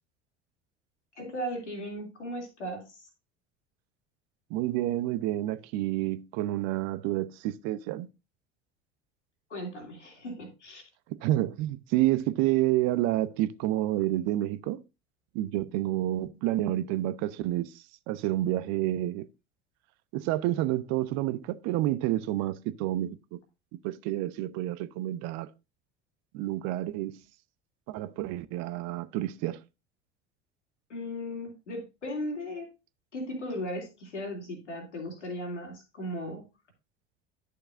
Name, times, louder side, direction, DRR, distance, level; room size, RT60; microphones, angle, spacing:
voice 1, 1.2-3.1 9.5-10.8 30.9-32.7 33.1-36.4, equal, 80° left, 2.7 m, -37 dB
voice 2, 4.5-8.1 11.2-14.8 15.3-17.7 18.1-19.3 20.1-23.4 23.8-25.5 26.3-27.2 27.9-29.6, right 15 dB, 50° right, 0.7 m, -29 dB
11.0 x 6.6 x 2.5 m
figure-of-eight pair, 70°, 35 cm